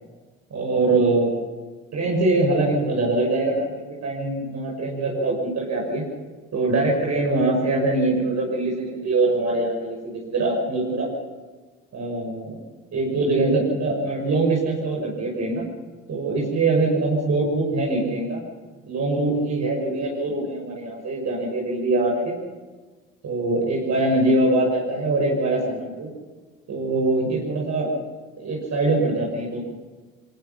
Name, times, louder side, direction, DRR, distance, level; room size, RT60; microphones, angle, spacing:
voice 1, 0.5-1.3 1.9-6.0 6.5-11.1 11.9-12.6 12.9-15.6 16.1-18.4 18.8-22.4 23.2-26.1 26.7-27.9 28.4-29.6, right 2 dB, 55° right, -2 dB, 6.2 m, -23 dB
23.0 x 20.5 x 6.0 m, 1.4 s
hypercardioid pair, 55°, 34 cm